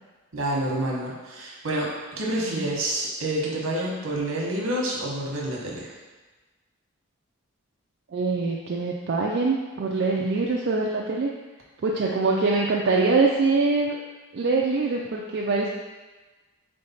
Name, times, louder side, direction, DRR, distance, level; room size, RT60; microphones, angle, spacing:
voice 1, 0.3-5.9, right 1 dB, 75° right, -3 dB, 1.0 m, -28 dB
voice 2, 8.1-11.3 11.8-14.0 14.3-15.7, right 3 dB, 55° right, -2 dB, 0.4 m, -24 dB
3.8 x 3.3 x 4.1 m, 1.2 s
head